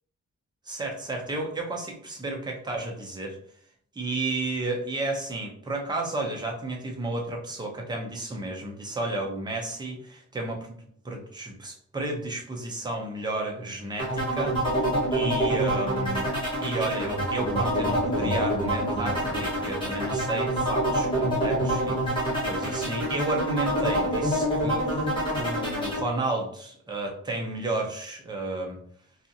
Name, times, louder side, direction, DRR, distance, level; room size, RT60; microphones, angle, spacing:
voice 1, 0.7-3.4 4.0-10.8 11.0-16.3 16.6-28.8, right 2 dB, 15° right, 1 dB, 0.4 m, -32 dB
sound 1, 14.0-26.0, right 1 dB, 15° left, 1.1 m, -26 dB
2.7 x 2.3 x 2.6 m, 0.63 s
wide cardioid pair, 175°, 29 cm